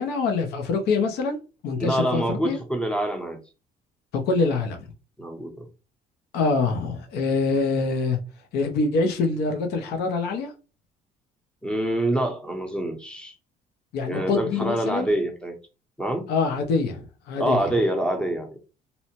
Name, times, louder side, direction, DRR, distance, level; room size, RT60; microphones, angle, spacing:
voice 1, 0.0-1.4 1.6-2.6 4.1-4.8 6.3-8.2 8.5-10.5 13.9-15.1 16.3-17.7, left 4 dB, 75° left, 0.6 m, -25 dB
voice 2, 1.8-3.4 5.2-5.7 11.6-13.3 14.1-15.6 16.0-16.3 17.4-18.5, right 1 dB, 5° left, 0.7 m, -26 dB
2.7 x 2.0 x 2.9 m
cardioid pair, 110°, 17 cm